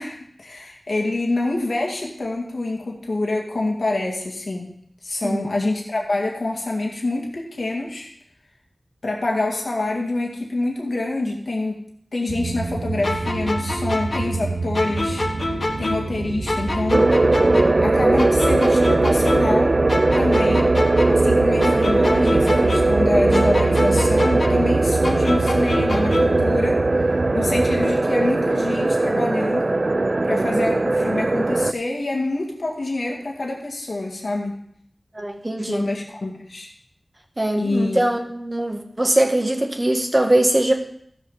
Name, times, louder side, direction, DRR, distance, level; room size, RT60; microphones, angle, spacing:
voice 1, 0.0-4.7 5.0-8.1 9.0-11.8 12.1-15.2 15.8-17.1 17.8-19.8 20.2-20.7 21.1-26.8 27.3-29.7 30.2-34.5 35.6-36.7 37.6-38.0, left 2 dB, 85° left, -1 dB, 2.0 m, -26 dB
sound 1, 12.3-27.9, right 3 dB, 90° right, 0.7 m, -27 dB
sound 2, 13.0-16.2 16.5-19.6 19.9-23.0 23.3-26.5, left 2 dB, 65° left, 1.6 m, -27 dB
sound 3, 16.9-31.7, right 2 dB, 55° right, 0.3 m, -19 dB
voice 2, 35.1-35.9 37.4-40.7, right 1 dB, 35° right, 3 dB, 1.9 m, -21 dB
14.5 x 6.5 x 5.6 m, 0.69 s
wide cardioid pair, 45°, 0 cm